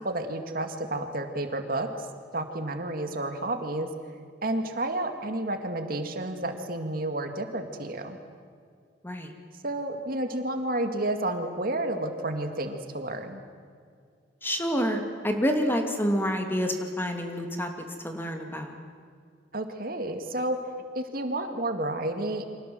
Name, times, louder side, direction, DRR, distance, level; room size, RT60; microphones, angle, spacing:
voice 1, 0.0-2.0 2.3-3.9 4.4-8.2 9.6-13.4 19.5-20.6 21.0-22.6, right 1 dB, 50° right, 6 dB, 2.3 m, -31 dB
voice 2, 14.4-17.7 18.0-18.7, equal, 10° left, 4 dB, 2.5 m, -28 dB
29.5 x 25.5 x 7.8 m, 2.1 s
head